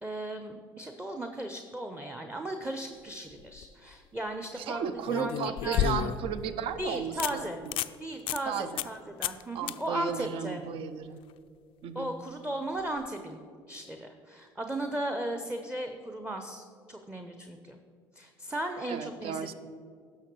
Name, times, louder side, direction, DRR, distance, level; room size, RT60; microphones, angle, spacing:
voice 1, 0.0-6.0 6.8-7.6 8.0-10.6 11.9-13.4 13.7-17.8 18.1-19.5, right 1 dB, 10° right, 6 dB, 0.7 m, -36 dB
sound 1, 3.3-3.7 5.1-6.4 6.8-6.9 7.2-7.3 7.7-7.9 8.3-8.4 8.8-9.0 9.2-9.4 9.7-9.8 12.9-13.0, left 10 dB, 50° left, 0.4 m, -31 dB
voice 2, 4.6-7.7 8.5-8.9 9.5-11.2 11.8-12.1 18.9-19.5, right 7 dB, 50° right, 12 dB, 0.6 m, -34 dB
17.0 x 6.4 x 3.1 m, 2.2 s
figure-of-eight pair, 55°, 12 cm